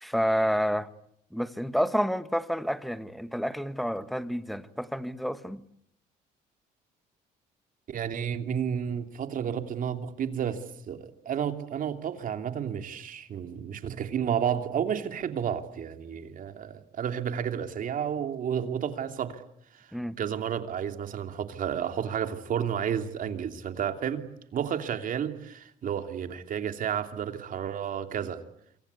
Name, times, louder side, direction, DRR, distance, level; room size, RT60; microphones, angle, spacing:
voice 1, 0.0-0.9 1.3-5.6 19.9-20.2, equal, ahead, 1.5 m, -29 dB
voice 2, 7.9-19.4 19.7-19.9 20.2-24.2 24.5-28.4, right 8 dB, 55° right, 3.0 m, -31 dB
27.0 x 24.5 x 8.4 m
cardioid pair, 110°, 17 cm